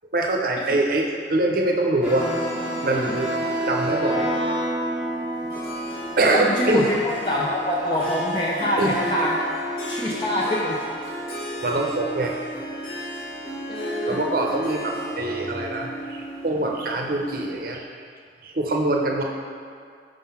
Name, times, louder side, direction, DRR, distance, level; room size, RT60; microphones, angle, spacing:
voice 1, 0.1-2.3 2.8-3.3 3.7-4.3 6.2-6.9 8.8-8.9 11.6-12.4 14.1-17.8 18.4-19.2, right 2 dB, 50° right, 1 dB, 0.6 m, -24 dB
sound 1, 2.0-8.1, right 1 dB, 10° right, 1.1 m, -29 dB
Harp, 5.5-17.7, equal, 55° left, 1.3 m, -33 dB
voice 2, 6.3-9.4 9.9-10.8 13.7-14.2, left 1 dB, 25° left, -4 dB, 0.4 m, -25 dB
5.2 x 3.8 x 5.6 m, 2.2 s
head